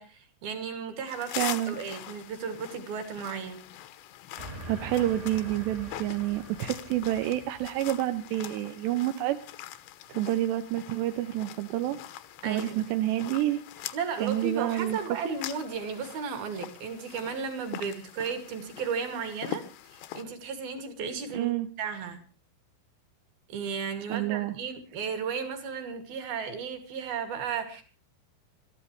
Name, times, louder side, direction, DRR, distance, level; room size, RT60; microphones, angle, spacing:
voice 1, 0.0-3.6 12.4-12.9 13.2-13.3 13.9-19.7 19.9-21.5 21.8-22.2 23.5-27.8, right 6 dB, 55° right, 7 dB, 3.8 m, -34 dB
sound 1, 1.1-20.2, left 13 dB, 75° left, 3.1 m, -43 dB
voice 2, 1.3-1.8 4.7-9.4 10.1-12.0 12.4-13.9 14.2-15.2 21.3-21.7 24.1-24.5, right 14 dB, 75° right, 7 dB, 2.7 m, -28 dB
Train, 4.4-8.3, right 1 dB, 25° right, 1.8 m, -44 dB
26.5 x 14.0 x 3.2 m, 0.35 s
omnidirectional pair, 5.8 m